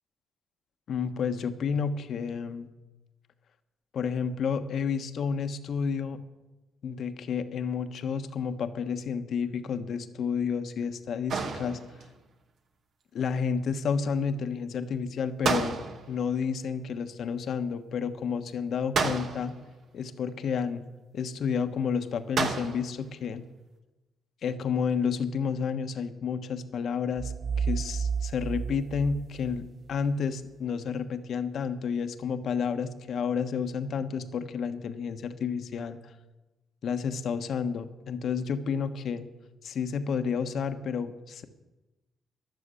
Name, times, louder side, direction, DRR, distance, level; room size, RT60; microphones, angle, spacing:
voice 1, 0.9-2.7 3.9-6.2 6.8-11.8 13.1-19.5 19.9-20.8 21.1-23.4 24.4-27.3 27.6-36.0 36.8-39.3 39.6-41.4, left 6 dB, 65° left, 8 dB, 1.2 m, -30 dB
sound 1, 11.3-12.2 15.4-16.3 18.9-19.7 22.4-23.0, right 5 dB, 60° right, 1.9 m, -30 dB
sound 2, 27.2-30.0, right 6 dB, 40° right, 0.4 m, -32 dB
13.0 x 11.0 x 8.3 m, 1.1 s
cardioid pair, 90°, 0 cm